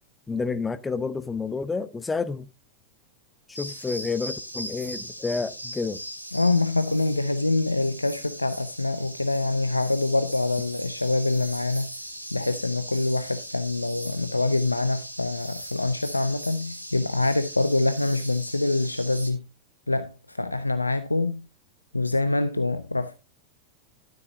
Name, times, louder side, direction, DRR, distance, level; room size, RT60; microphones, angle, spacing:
voice 1, 0.3-2.5 3.5-6.0, left 4 dB, 15° left, 0.7 m, -29 dB
sound 1, 3.6-19.3, right 1 dB, 90° right, 1.6 m, -39 dB
voice 2, 6.3-11.9 12.3-19.4 19.9-21.4 21.9-23.2, left 2 dB, 85° left, 0.5 m, -25 dB
12.5 x 8.0 x 2.7 m
figure-of-eight pair, 90°, 0 cm